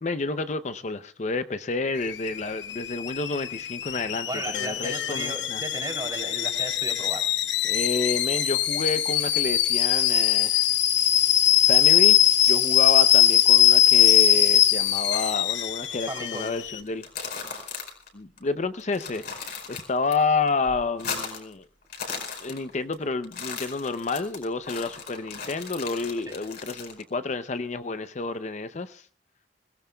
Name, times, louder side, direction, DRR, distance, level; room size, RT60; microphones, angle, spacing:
voice 1, 0.0-4.3 4.5-5.6 7.6-10.7 11.7-12.2 12.5-17.1 18.1-21.7 22.4-29.1, left 3 dB, 40° left, 11 dB, 0.6 m, -29 dB
Alarm / Boiling, 2.0-16.8, left 11 dB, 85° left, 1.0 m, -21 dB
voice 2, 4.2-7.3 16.0-16.6 26.3-26.4, right 2 dB, 25° right, 2 dB, 3.0 m, -35 dB
sound 1, 16.9-18.1 18.4-18.5 18.8-20.1 20.5-21.5 21.8-22.9 23.2-27.0, left 5 dB, 60° left, 4.6 m, -36 dB
25.5 x 17.5 x 2.3 m, 0.39 s
head